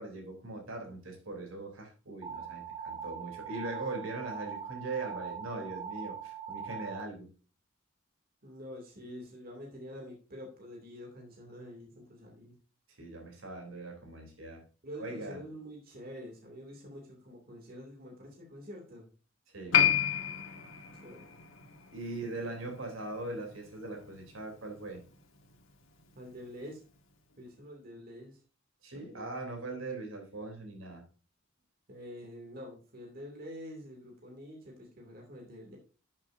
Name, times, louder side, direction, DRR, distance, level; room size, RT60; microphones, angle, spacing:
voice 1, 0.0-7.3 13.0-14.6 15.0-15.4 19.5-19.8 21.9-25.0 28.8-31.0, right 2 dB, 80° right, 3.2 m, -40 dB
sound 1, 2.2-7.0, right 7 dB, 25° right, 3.0 m, -41 dB
voice 2, 8.4-12.5 14.8-19.1 21.0-21.3 26.1-26.8 27.4-28.4 28.9-29.3 31.9-35.8, equal, 45° right, 2.5 m, -47 dB
Piano, 19.7-26.7 26.9-27.0, left 9 dB, 75° left, 1.7 m, -33 dB
11.0 x 7.3 x 2.6 m
head